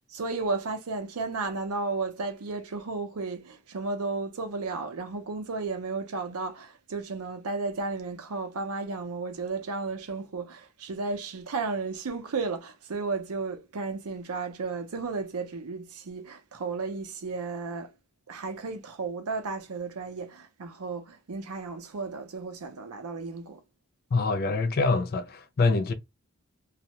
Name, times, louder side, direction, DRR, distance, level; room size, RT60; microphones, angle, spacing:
voice 1, 0.1-17.9 18.3-23.6, right 4 dB, 80° right, 0.6 m, -33 dB
voice 2, 24.1-25.9, left 3 dB, 45° left, 0.4 m, -25 dB
2.4 x 2.1 x 2.8 m
head